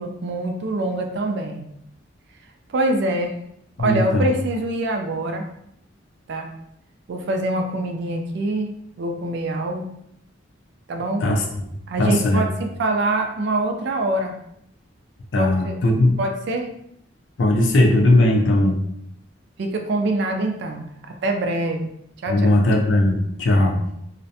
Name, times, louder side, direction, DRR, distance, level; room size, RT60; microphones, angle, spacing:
voice 1, 0.0-1.7 2.7-3.4 3.8-5.5 6.3-6.5 7.1-8.7 9.0-9.9 10.9-11.3 11.9-14.3 15.4-15.8 16.2-16.7 19.6-20.8 21.2-21.9 22.2-22.6, right 2 dB, 60° right, 3 dB, 0.3 m, -24 dB
voice 2, 3.8-4.3 11.2-11.4 12.0-12.4 15.3-16.2 17.4-18.8 22.3-23.8, left 1 dB, 70° left, 1 dB, 0.4 m, -18 dB
2.4 x 2.1 x 2.6 m, 0.75 s
head